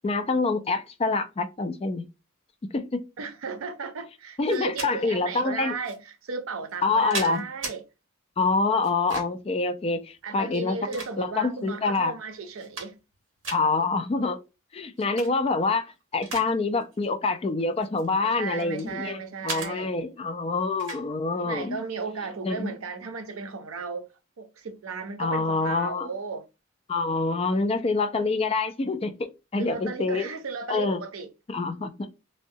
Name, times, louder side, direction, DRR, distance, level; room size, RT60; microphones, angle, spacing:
voice 1, 0.0-2.0 2.7-3.0 4.4-5.7 6.8-7.4 8.4-10.8 11.2-12.1 13.5-14.4 14.7-15.9 16.1-21.8 22.4-22.7 25.2-26.1 26.9-30.3 30.7-31.0 31.5-31.9, left 3 dB, 30° left, 0.3 m, -26 dB
voice 2, 3.2-7.8 10.2-13.0 18.2-19.9 21.4-24.1 24.4-26.5 29.6-31.3, right 4 dB, 85° right, 0.6 m, -35 dB
sound 1, 4.5-4.9 5.8-6.0 6.7-7.8 8.8-9.5 10.4-11.5 12.1-12.2 12.5-13.1 13.4-13.6 15.0-15.3 15.7-16.5 16.8-17.1 17.8-18.9 19.5-19.7 20.8-21.0, right 3 dB, 65° right, 0.9 m, -36 dB
3.7 x 2.1 x 2.6 m
head